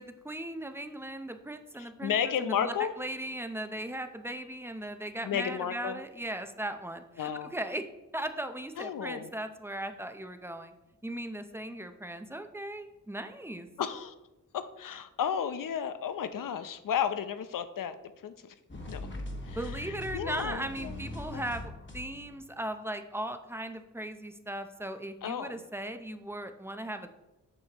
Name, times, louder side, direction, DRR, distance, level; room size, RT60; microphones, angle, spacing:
voice 1, 0.0-2.1 2.4-7.9 8.1-10.7 11.0-13.7 19.5-27.1, right 1 dB, 5° right, 7 dB, 0.6 m, -38 dB
voice 2, 1.8-2.9 5.2-6.0 7.2-7.5 8.8-9.3 13.8-14.1 14.5-17.9 18.2-18.5 18.9-19.0 19.5-19.6 19.9-21.0 21.3-21.4 25.2-25.6, left 8 dB, 75° left, 11 dB, 0.6 m, -33 dB
sound 1, 18.7-22.5, left 1 dB, 35° left, 1.4 m, -41 dB
8.7 x 6.3 x 3.0 m, 1.0 s
wide cardioid pair, 85°, 33 cm